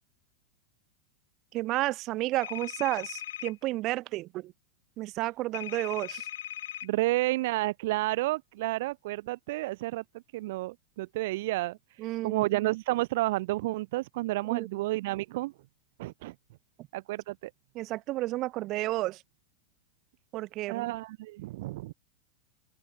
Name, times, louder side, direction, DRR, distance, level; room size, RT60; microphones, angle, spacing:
voice 1, 1.5-4.5 5.0-6.3 12.0-12.4 14.5-14.7 17.7-19.2 20.3-20.9, right 18 dB, 45° right, 3.7 m, -31 dB
sound 1, 2.4-3.5 5.5-6.9, left 12 dB, 80° left, 4.2 m, -39 dB
voice 2, 6.8-10.0 10.3-15.5 16.0-16.3 16.9-17.5 20.7-21.9, right 19 dB, 65° right, 1.6 m, -31 dB
open air
hypercardioid pair, 115°, 0 cm